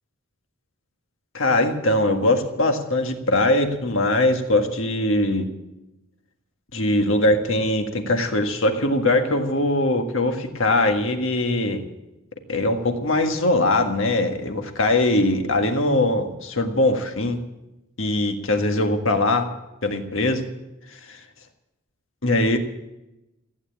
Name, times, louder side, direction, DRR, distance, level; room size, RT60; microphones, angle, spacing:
voice 1, 1.3-5.5 6.7-11.8 12.5-17.4 18.0-19.5 19.8-20.4 20.9-21.2 22.2-22.6, left 2 dB, 60° left, 5 dB, 1.7 m, -21 dB
15.5 x 9.3 x 8.6 m, 0.94 s
head